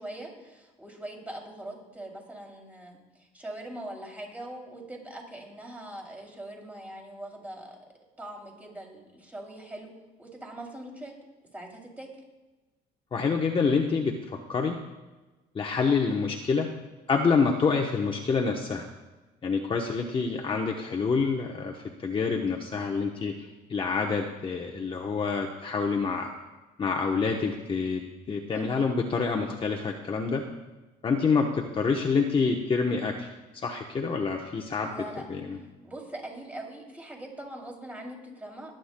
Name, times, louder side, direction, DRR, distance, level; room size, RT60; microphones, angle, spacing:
voice 1, 0.0-7.8 8.2-9.9 10.2-11.1 11.5-12.1 28.5-28.9 34.8-35.3 35.5-38.7, right 1 dB, 10° right, 0 dB, 2.8 m, -42 dB
voice 2, 13.1-14.8 15.5-16.7 17.1-18.9 19.4-23.3 23.7-26.3 26.8-28.0 28.3-30.4 31.0-33.3 33.6-35.0 35.3-35.6, left 5 dB, 30° left, 1 dB, 0.9 m, -27 dB
21.5 x 8.9 x 2.2 m, 1.2 s
cardioid pair, 110°, 17 cm